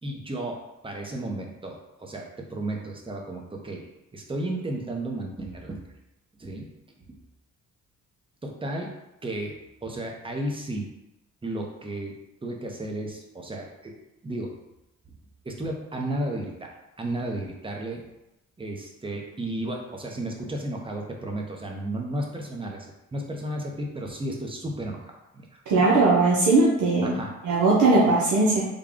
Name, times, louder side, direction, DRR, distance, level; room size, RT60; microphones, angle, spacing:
voice 1, 0.0-5.8 6.4-6.7 7.1-7.2 8.4-9.0 9.2-10.9 11.4-12.2 12.4-13.9 14.2-14.6 15.4-16.7 17.0-18.0 18.6-22.9 23.1-25.8 27.0-27.3, right 1 dB, 15° right, 1 dB, 0.7 m, -33 dB
voice 2, 25.7-27.1 27.4-28.7, right 3 dB, 80° right, -6 dB, 0.8 m, -19 dB
3.7 x 2.3 x 3.6 m, 0.91 s
cardioid pair, 90°, 30 cm